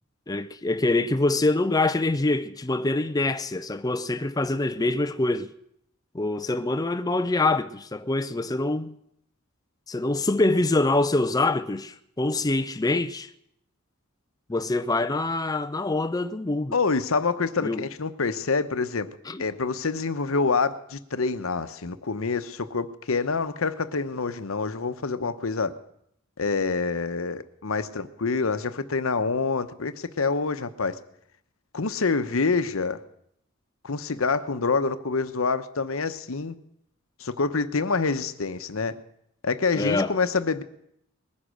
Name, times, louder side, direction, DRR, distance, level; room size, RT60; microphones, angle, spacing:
voice 1, 0.3-5.5 6.1-8.9 9.9-13.3 14.5-16.7 17.6-17.8 19.3-19.4 39.7-40.2, left 2 dB, 20° left, 0.5 m, -25 dB
voice 2, 16.7-19.1 19.4-25.7 26.4-31.0 31.7-33.0 33.8-36.5 37.2-39.0 39.4-40.6, left 4 dB, 75° left, 0.9 m, -26 dB
20.5 x 9.8 x 6.3 m
head